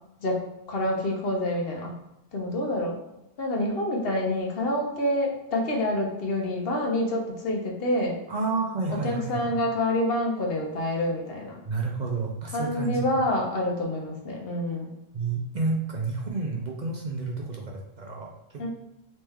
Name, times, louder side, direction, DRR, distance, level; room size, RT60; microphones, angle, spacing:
voice 1, 0.2-1.9 2.3-3.0 3.4-8.2 8.9-11.6 12.5-14.9 18.6-18.7, left 1 dB, 65° left, -1 dB, 1.0 m, -27 dB
voice 2, 8.3-9.6 11.7-13.1 15.1-18.7, right 3 dB, 50° right, -1 dB, 0.6 m, -30 dB
3.3 x 3.1 x 3.4 m, 0.90 s
omnidirectional pair, 1.1 m